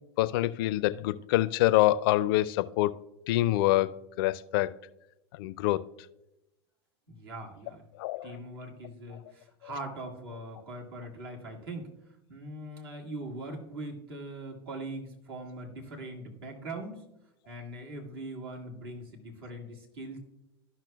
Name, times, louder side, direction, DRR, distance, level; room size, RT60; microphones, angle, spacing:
voice 1, 0.2-2.9 3.3-4.7 5.3-5.8 8.0-8.3, left 16 dB, 60° left, 0.4 m, -26 dB
voice 2, 7.1-7.8 8.2-11.9 12.3-17.0 17.5-20.2, right 1 dB, 70° right, 1.8 m, -41 dB
13.5 x 5.9 x 2.2 m
hypercardioid pair, 90°, 13 cm